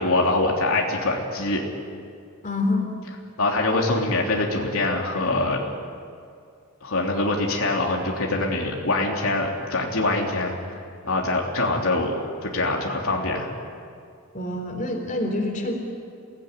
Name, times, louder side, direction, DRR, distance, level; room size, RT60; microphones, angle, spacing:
voice 1, 0.0-1.6 3.4-5.6 6.8-10.5 11.0-13.5, left 2 dB, 75° left, -1 dB, 3.2 m, -24 dB
voice 2, 2.4-2.9 14.3-15.7, left 2 dB, 35° left, 2 dB, 4.0 m, -26 dB
28.0 x 18.5 x 9.8 m, 2.3 s
head